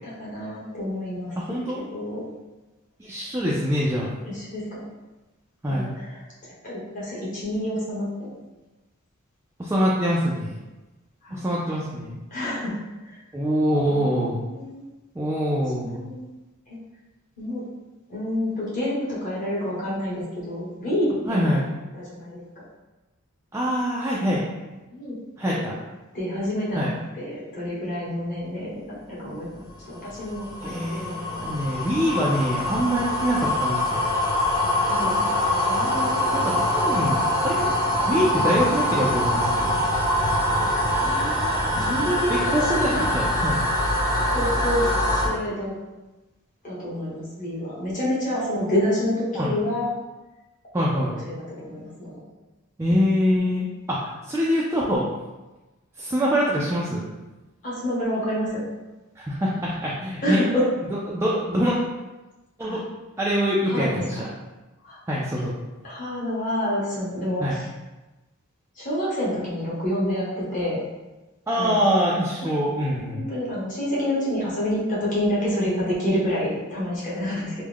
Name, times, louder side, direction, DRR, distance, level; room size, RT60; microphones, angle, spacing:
voice 1, 0.0-1.3 1.7-2.3 4.2-4.8 5.7-8.4 11.2-11.4 12.3-12.8 13.0-13.2 13.9-14.9 15.8-16.3 16.7-16.8 17.4-17.6 18.1-21.6 21.9-22.4 24.9-25.2 25.5-25.7 26.1-31.6 31.9-32.0 34.6-35.3 35.6-36.2 41.0-43.1 44.3-45.7 46.6-50.0 50.8-52.2 57.6-58.6 60.2-60.6 62.6-62.8 63.7-64.2 64.8-65.0 65.8-67.7 68.7-70.8 71.5-71.8 73.1-77.5, left 1 dB, 40° left, -8 dB, 1.2 m, -28 dB
voice 2, 1.4-1.8 3.0-4.1 5.6-5.9 9.6-10.6 11.3-12.2 13.3-14.4 15.2-16.0 21.3-21.6 23.5-24.5 25.4-25.7 26.7-26.9 30.6-34.1 36.3-37.7 38.1-39.7 42.3-43.6 48.3-48.8 49.3-49.5 50.7-51.1 52.8-55.1 56.0-57.0 59.2-60.4 61.1-61.8 62.6-62.8 63.2-64.3 65.1-65.5 67.4-67.6 71.5-73.3, equal, 15° right, -6 dB, 0.3 m, -24 dB
sound 1, 29.7-45.3, left 1 dB, 20° left, 0.7 m, -24 dB
3.4 x 2.1 x 3.5 m, 1.1 s
head